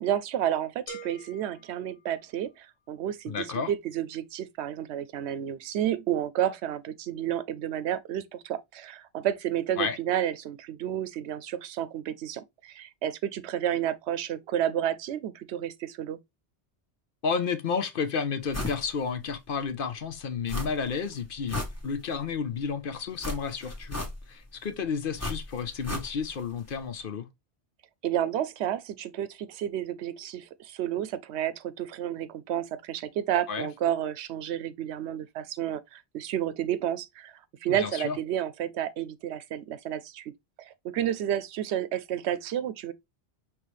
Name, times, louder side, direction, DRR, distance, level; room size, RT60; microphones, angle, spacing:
voice 1, 0.0-16.2 28.0-40.3 40.6-42.9, right 11 dB, 80° right, 0.8 m, -31 dB
sound 1, 0.9-2.7, right 2 dB, 40° left, 1.1 m, -46 dB
voice 2, 3.3-3.7 9.8-10.0 17.2-27.3 33.5-33.7 37.7-38.2, left 6 dB, 60° left, 0.8 m, -31 dB
sound 2, 18.5-18.8 19.2-19.3 20.5-21.0 21.3-22.3 23.2-24.5 25.2-26.4 26.7-26.8, left 2 dB, 15° left, 1.0 m, -35 dB
5.5 x 3.0 x 3.1 m
omnidirectional pair, 1.1 m